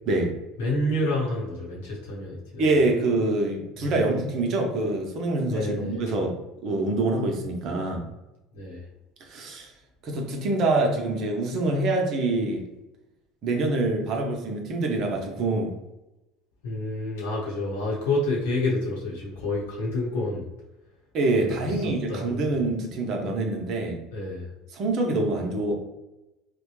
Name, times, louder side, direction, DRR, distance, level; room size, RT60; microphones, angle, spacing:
voice 1, 0.6-2.6 3.8-4.1 5.5-6.0 8.5-8.9 16.6-20.5 21.3-22.6 24.1-24.5, left 2 dB, 75° left, -3 dB, 1.0 m, -29 dB
voice 2, 2.6-6.4 6.6-8.1 9.2-9.7 10.0-12.6 13.4-15.7 21.1-24.0 24.7-25.7, right 2 dB, 55° right, 2 dB, 0.8 m, -25 dB
3.2 x 2.2 x 3.1 m, 0.96 s
hypercardioid pair, 75°, 0 cm